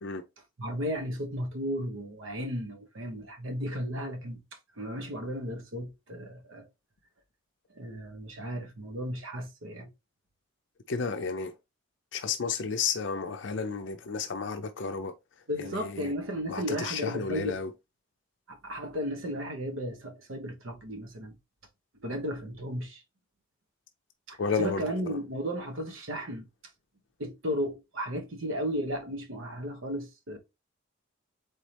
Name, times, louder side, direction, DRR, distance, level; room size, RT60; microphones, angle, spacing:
voice 1, 0.6-4.4 4.8-6.7 7.7-9.9 15.5-17.6 18.5-21.3 22.0-23.0 24.3-26.5 27.2-30.4, equal, 80° right, 1.1 m, -34 dB
voice 2, 10.9-11.6 12.1-15.1 15.6-16.1 16.5-17.7 24.4-25.2, left 5 dB, 60° left, 0.5 m, -32 dB
4.1 x 3.7 x 3.3 m
head